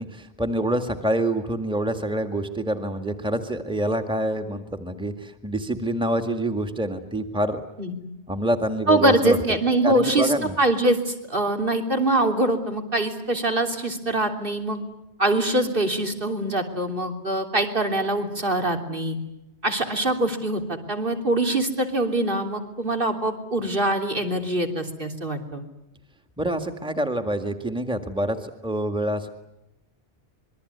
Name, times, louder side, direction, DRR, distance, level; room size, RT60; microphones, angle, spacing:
voice 1, 0.0-7.6 8.3-9.4 9.8-10.6 26.4-29.3, right 1 dB, 5° right, 7 dB, 2.0 m, -26 dB
voice 2, 8.9-14.8 15.2-19.2 19.6-25.6, right 1 dB, 55° right, 5 dB, 3.4 m, -23 dB
26.5 x 22.5 x 9.6 m, 0.88 s
omnidirectional pair, 1.1 m